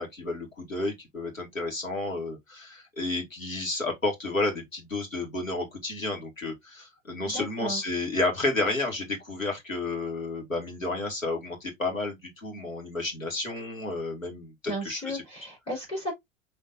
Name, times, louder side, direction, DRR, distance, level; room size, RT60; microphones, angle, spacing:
voice 1, 0.0-15.2, left 2 dB, 85° left, 1.9 m, -31 dB
voice 2, 7.3-7.8 14.6-16.1, equal, 15° left, 3.4 m, -34 dB
5.7 x 3.2 x 2.5 m
figure-of-eight pair, 90°, 39 cm